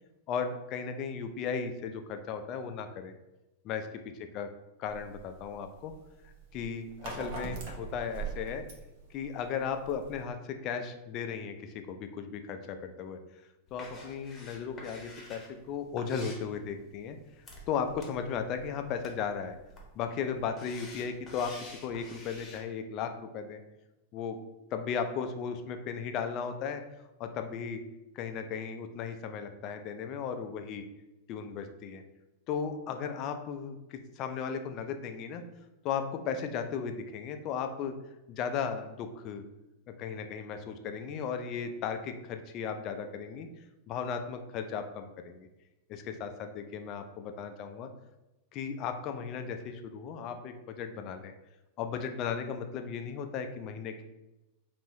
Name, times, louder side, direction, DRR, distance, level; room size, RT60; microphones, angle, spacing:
voice 1, 0.3-3.1 3.6-4.0 4.3-4.5 4.8-5.9 6.5-8.6 9.1-13.2 13.7-17.2 17.7-19.6 19.9-23.6 24.1-24.4 24.7-26.8 27.2-27.8 28.1-30.8 31.3-32.0 32.5-35.4 35.8-37.9 38.3-39.4 40.0-43.5 43.9-45.5 45.9-47.9 48.5-51.3 51.8-54.0, left 6 dB, 40° left, 7 dB, 0.4 m, -36 dB
sound 1, 4.9-10.2, right 5 dB, 50° right, 0.8 m, -42 dB
sound 2, 13.7-22.6, left 2 dB, 20° left, 1.0 m, -50 dB
5.2 x 2.5 x 3.0 m, 0.99 s
figure-of-eight pair, 90°, 0 cm